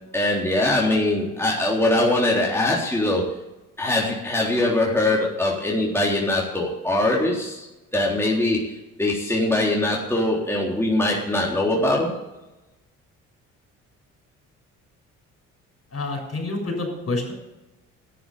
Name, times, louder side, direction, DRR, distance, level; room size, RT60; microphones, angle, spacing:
voice 1, 0.1-3.3 3.8-7.7 7.9-8.6 9.0-12.2, left 1 dB, 5° left, -3 dB, 3.8 m, -22 dB
voice 2, 15.9-17.3, left 2 dB, 40° left, 3 dB, 6.9 m, -28 dB
13.0 x 11.5 x 7.0 m, 0.98 s
hypercardioid pair, 50°, 38 cm